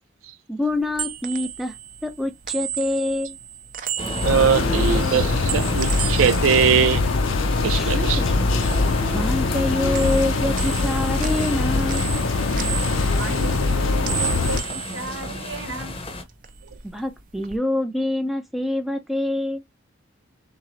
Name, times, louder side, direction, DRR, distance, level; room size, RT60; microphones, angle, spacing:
voice 1, 0.5-1.7 2.0-3.4 7.7-8.5 9.1-12.0 16.9-19.6, left 1 dB, ahead, 0.4 m, -26 dB
sound 1, 0.6-8.0 8.3-9.7 9.9-15.9 16.2-17.6, right 10 dB, 45° right, 0.6 m, -34 dB
sound 2, 4.0-16.2, left 1 dB, 25° left, 0.8 m, -31 dB
sound 3, 4.2-14.6, left 3 dB, 75° left, 0.6 m, -23 dB
voice 2, 4.3-7.0 7.6-8.2, right 7 dB, 85° right, 0.4 m, -21 dB
voice 3, 13.0-15.9, right 1 dB, 65° right, 1.0 m, -34 dB
3.9 x 3.7 x 3.1 m
head